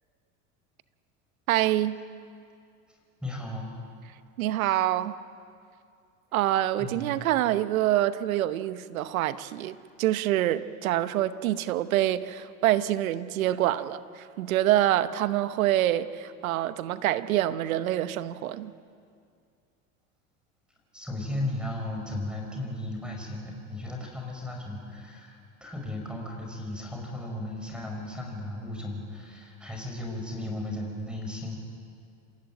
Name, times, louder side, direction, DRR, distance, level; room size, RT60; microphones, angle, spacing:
voice 1, 1.5-2.0 4.4-5.1 6.3-18.7, right 13 dB, 80° right, 1.1 m, -26 dB
voice 2, 3.2-3.7 6.8-7.1 20.9-31.5, left 1 dB, ahead, 6.4 m, -35 dB
28.0 x 16.0 x 9.0 m
hypercardioid pair, 95°, 41 cm